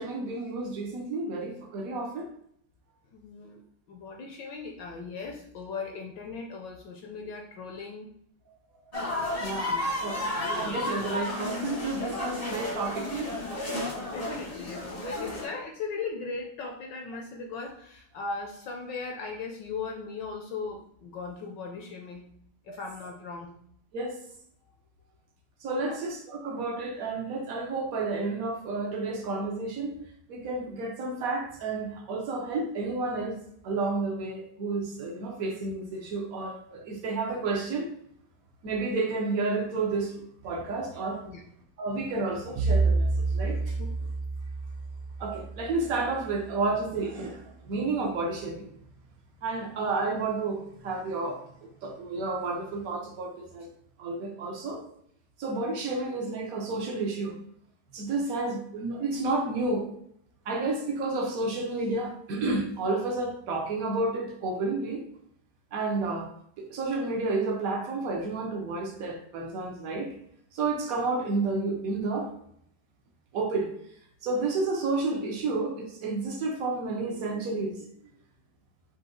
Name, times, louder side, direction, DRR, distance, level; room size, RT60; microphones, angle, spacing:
voice 1, 0.0-2.3 9.3-10.2 10.5-13.3 22.7-22.8 23.9-24.2 25.6-29.9 30.3-33.4 33.6-37.9 38.6-41.2 41.8-43.8 45.2-48.7 49.4-53.7 54.0-54.8 55.4-57.4 57.9-59.9 60.5-65.0 65.7-66.3 66.6-70.1 70.5-72.3 73.3-73.7 74.2-77.8, right 3 dB, 70° right, 1 dB, 0.8 m, -31 dB
voice 2, 3.1-3.6 3.9-8.1 9.7-9.9 14.0-22.2 22.6-23.5 25.8-26.0 41.2-41.4 43.8-44.1, left 4 dB, 75° left, 2 dB, 1.1 m, -38 dB
sound 1, 8.9-15.5, left 2 dB, 35° left, 0.5 m, -32 dB
Bowed string instrument, 42.6-46.8, right 3 dB, 90° right, 1.5 m, -29 dB
4.9 x 2.7 x 3.7 m, 0.68 s
omnidirectional pair, 2.4 m